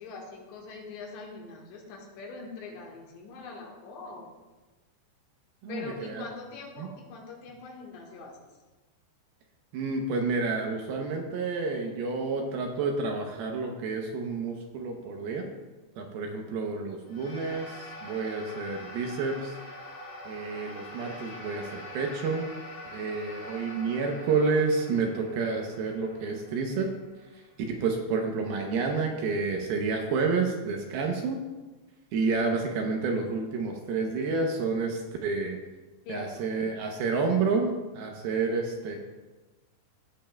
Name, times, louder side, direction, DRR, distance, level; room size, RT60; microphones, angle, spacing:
voice 1, 0.0-4.3 5.7-8.4 28.1-28.4 36.1-36.5, left 4 dB, 80° left, -1 dB, 3.7 m, -42 dB
voice 2, 5.6-6.2 6.8-6.9 9.7-15.5 16.0-19.6 20.2-22.5 22.9-26.9 27.7-31.4 32.1-35.6 36.1-39.0, right 4 dB, 75° right, 2 dB, 2.4 m, -29 dB
sound 1, 17.1-27.6, left 1 dB, 50° left, 4.2 m, -44 dB
16.0 x 7.8 x 2.2 m, 1.2 s
omnidirectional pair, 5.0 m